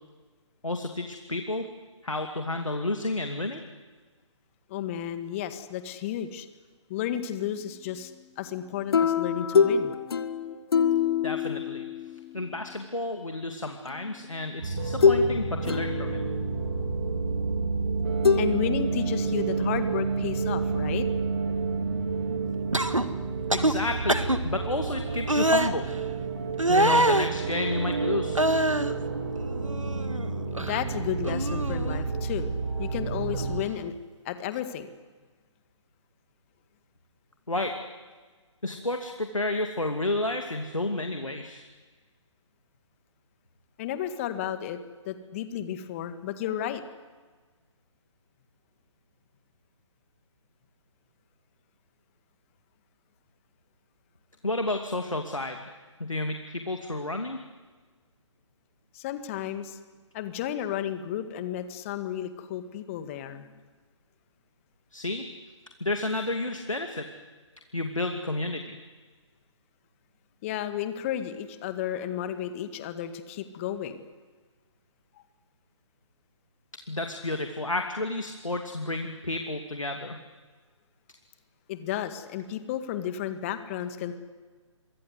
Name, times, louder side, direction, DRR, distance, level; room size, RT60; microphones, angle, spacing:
voice 1, 0.6-1.7 2.0-3.6 11.2-11.8 12.3-16.2 23.5-25.9 26.7-28.4 37.5-37.8 38.6-41.6 54.4-55.6 56.0-57.4 64.9-65.3 65.8-67.1 67.7-68.8 76.9-80.2, left 2 dB, 80° left, 4 dB, 2.7 m, -31 dB
voice 2, 4.7-6.5 6.9-8.1 8.4-10.0 18.4-21.1 30.6-32.5 32.8-33.9 34.3-34.9 43.8-44.8 45.0-46.8 58.9-59.8 60.1-63.5 70.4-74.0 81.7-84.2, left 10 dB, 25° left, 10 dB, 1.9 m, -32 dB
sound 1, 8.9-12.5 13.9-14.0 15.0-15.3 15.6-16.5 18.2-18.4, left 6 dB, 50° left, 1.6 m, -24 dB
sound 2, 14.6-33.6, right 4 dB, 50° right, 4.5 m, -30 dB
sound 3, 22.7-23.0 23.5-23.7 24.1-24.4 25.3-25.7 26.6-27.3 28.3-28.9 29.4-30.3 30.5-30.8 31.2-32.0 33.3-33.5, right 1 dB, 90° right, 1.7 m, -25 dB
28.5 x 25.0 x 8.1 m, 1.4 s
figure-of-eight pair, 140°, 16 cm